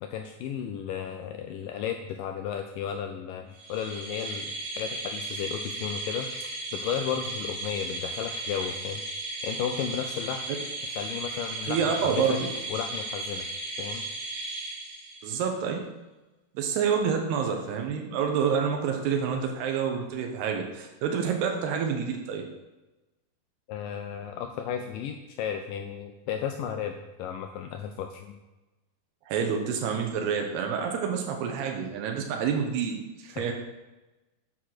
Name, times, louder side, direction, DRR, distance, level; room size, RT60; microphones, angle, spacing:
voice 1, 0.0-6.3 6.7-9.0 9.4-10.4 10.8-12.4 12.7-13.5 13.8-14.0 23.7-28.4 33.4-33.5, left 8 dB, 90° left, 5 dB, 1.9 m, -34 dB
sound 1, 3.6-15.4, right 2 dB, 65° right, 4.0 m, -35 dB
voice 2, 11.7-12.5 15.2-15.8 16.6-22.4 29.3-33.5, right 7 dB, 85° right, 2 dB, 3.0 m, -28 dB
8.3 x 6.0 x 6.4 m, 1.1 s
omnidirectional pair, 4.5 m